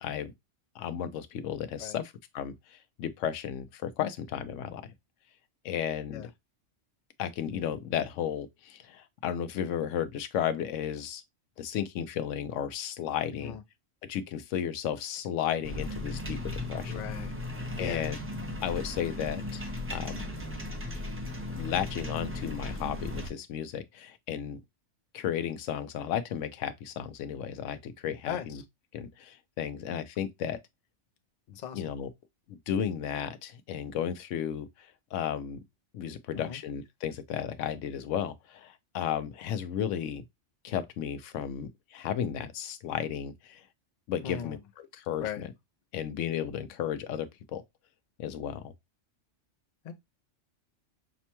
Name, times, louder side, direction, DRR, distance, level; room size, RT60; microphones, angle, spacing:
voice 1, 0.0-0.3 0.8-4.8 5.6-6.3 7.2-11.2 11.6-13.6 14.1-17.0 17.8-18.2 18.6-19.6 19.9-20.3 21.5-24.6 25.1-28.6 28.9-30.6 31.5-32.1 32.5-35.6 35.9-40.2 40.6-43.6 44.1-45.5 45.9-47.6 48.2-48.7, left 9 dB, 85° left, 0.9 m, -34 dB
sound 1, 15.6-23.3, left 1 dB, 20° right, 0.3 m, -36 dB
voice 2, 16.9-17.3 17.8-18.1 28.3-28.5 31.6-31.8 36.3-36.6 44.2-44.6 45.2-45.4 49.8-49.9, left 9 dB, 50° left, 0.5 m, -37 dB
5.9 x 2.2 x 2.8 m
omnidirectional pair, 1.2 m